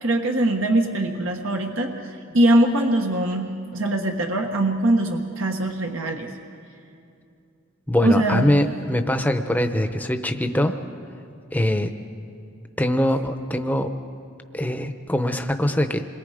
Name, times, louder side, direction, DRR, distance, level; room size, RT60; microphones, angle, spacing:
voice 1, 0.0-1.9 2.3-6.3 8.0-8.4, right 1 dB, 80° right, 2 dB, 1.3 m, -22 dB
voice 2, 7.9-10.8 11.5-11.9 12.8-13.9 14.5-16.1, left 1 dB, 10° left, 7 dB, 0.8 m, -22 dB
27.5 x 22.0 x 5.0 m, 2.6 s
head